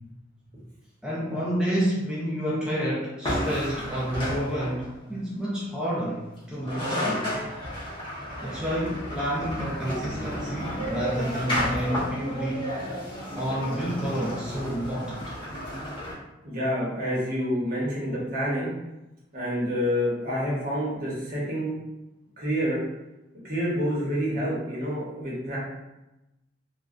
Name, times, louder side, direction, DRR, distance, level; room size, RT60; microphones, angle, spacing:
voice 1, 1.0-7.3 8.4-12.7 13.4-15.2, equal, 5° right, -7 dB, 0.4 m, -29 dB
sound 1, 3.2-5.0 6.4-6.5 6.6-16.1, equal, 25° left, 0.8 m, -32 dB
voice 2, 16.4-18.7 19.3-21.7 22.4-22.8 23.4-25.6, equal, 50° right, -6 dB, 1.0 m, -28 dB
3.1 x 2.3 x 2.4 m, 0.98 s
head